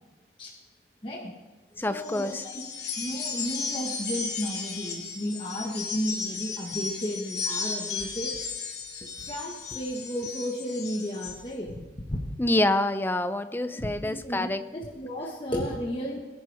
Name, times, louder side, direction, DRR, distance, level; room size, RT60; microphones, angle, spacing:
voice 1, 1.0-1.3 1.9-2.6 3.0-8.4 9.3-11.8 12.1-12.3 13.7-16.2, equal, 30° left, -2 dB, 1.5 m, -33 dB
voice 2, 1.8-2.5 12.4-14.6, left 1 dB, 10° left, 11 dB, 0.5 m, -26 dB
sound 1, 2.0-11.4, left 5 dB, 80° left, 3.2 m, -35 dB
22.0 x 10.5 x 3.5 m, 1.2 s
head